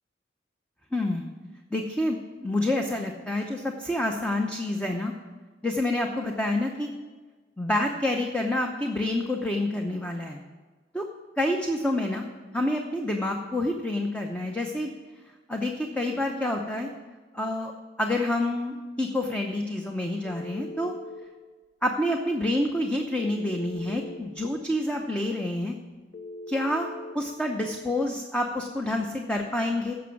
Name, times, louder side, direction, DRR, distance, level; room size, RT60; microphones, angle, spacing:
voice 1, 0.9-1.3 1.7-5.1 5.6-6.9 7.6-10.4 10.9-11.1 11.4-12.2 12.5-14.9 15.5-16.9 17.3-17.7 18.0-20.9 21.8-25.7 26.5-26.9 27.1-29.9, left 1 dB, 5° left, 2 dB, 0.8 m, -28 dB
Telephone, 20.2-21.3 23.2-24.2 26.1-27.2, left 1 dB, 60° left, 0.9 m, -40 dB
16.0 x 6.1 x 5.9 m, 1.3 s
head